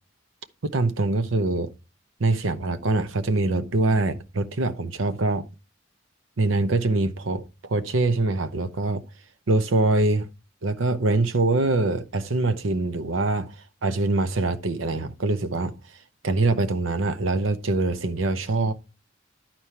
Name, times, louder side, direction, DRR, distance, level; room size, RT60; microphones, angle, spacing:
voice 1, 0.6-1.7 2.2-5.4 6.4-9.0 9.5-10.3 10.6-13.6 13.8-15.7 16.2-18.7, right 2 dB, 80° right, 0.8 m, -24 dB
11.5 x 4.4 x 4.5 m
head